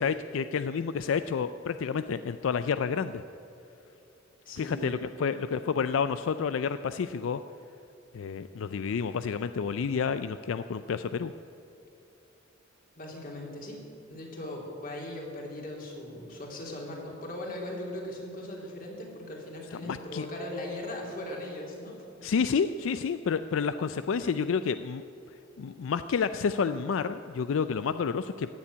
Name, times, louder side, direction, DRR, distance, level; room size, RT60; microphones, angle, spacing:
voice 1, 0.0-3.2 4.6-7.4 8.1-11.3 19.9-20.3 22.2-25.0 25.6-28.5, left 6 dB, 85° left, 12 dB, 0.4 m, -29 dB
voice 2, 4.4-5.1 13.0-13.8 14.1-22.0, left 1 dB, 45° left, -1 dB, 3.0 m, -39 dB
15.5 x 7.3 x 9.5 m, 2.8 s
head